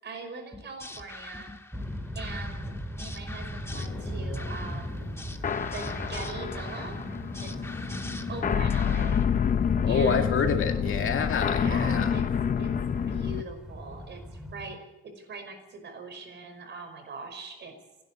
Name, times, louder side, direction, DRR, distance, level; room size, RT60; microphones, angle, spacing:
voice 1, 0.0-1.5 2.1-5.1 5.7-7.0 7.4-7.5 8.3-9.3 9.9-10.4 11.5-12.2 12.6-12.7 13.1-14.8 15.0-17.7, right 3 dB, 55° right, 6 dB, 5.5 m, -41 dB
sound 1, 0.5-9.2, left 2 dB, 10° left, 1.5 m, -44 dB
sound 2, 1.7-14.7, equal, 5° right, 2.1 m, -38 dB
sound 3, 3.7-13.4, left 7 dB, 40° left, 0.7 m, -29 dB
voice 2, 9.8-12.1, left 6 dB, 75° left, 4 dB, 2.1 m, -27 dB
29.0 x 11.0 x 8.3 m, 1.0 s
wide cardioid pair, 160°, 21 cm